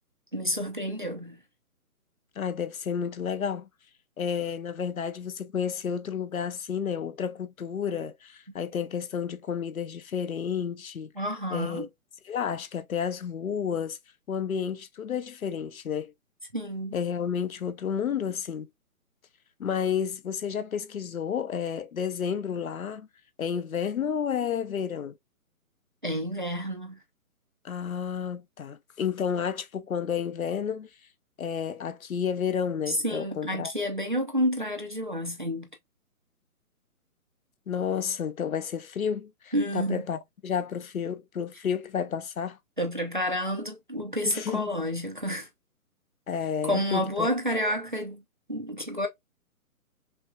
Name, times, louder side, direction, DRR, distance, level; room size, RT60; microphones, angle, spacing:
voice 1, 0.3-1.4 11.2-11.9 16.5-17.0 26.0-27.0 32.9-35.7 39.5-40.0 42.8-45.5 46.6-48.2 48.5-49.1, equal, 35° right, 0.5 m, -29 dB
voice 2, 2.4-3.7 4.2-11.1 11.5-11.9 12.3-14.0 14.3-16.1 16.9-18.7 19.6-23.1 23.4-25.1 27.6-30.9 31.4-33.7 37.7-42.6 44.3-44.7 46.3-47.3, left 7 dB, 65° left, 0.7 m, -31 dB
5.7 x 2.3 x 2.3 m
hypercardioid pair, 180°, 44 cm